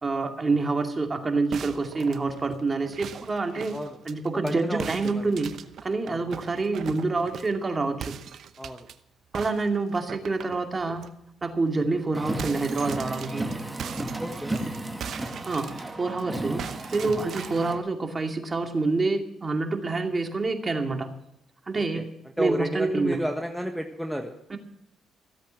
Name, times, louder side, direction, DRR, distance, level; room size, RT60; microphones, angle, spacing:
voice 1, 0.0-3.8 4.1-5.5 5.8-8.1 9.3-11.1 11.4-13.5 15.5-16.6 16.9-21.2 21.7-22.1 22.4-23.2 24.5-24.6, right 3 dB, 30° right, 4 dB, 2.4 m, -27 dB
sound 1, 1.5-4.5 4.8-7.6 8.0-8.9 9.3-11.1 11.5-11.7 11.9-16.2 16.6-17.8, right 8 dB, 65° right, 0.8 m, -40 dB
voice 2, 4.4-5.3 6.0-6.2 8.6-8.9 14.2-14.6 21.7-22.0 22.4-24.3, equal, ahead, 4 dB, 1.5 m, -31 dB
Car, 12.1-17.8, right 2 dB, 15° right, 2.0 m, -34 dB
15.5 x 8.2 x 7.7 m, 0.78 s
supercardioid pair, 65°, 0 cm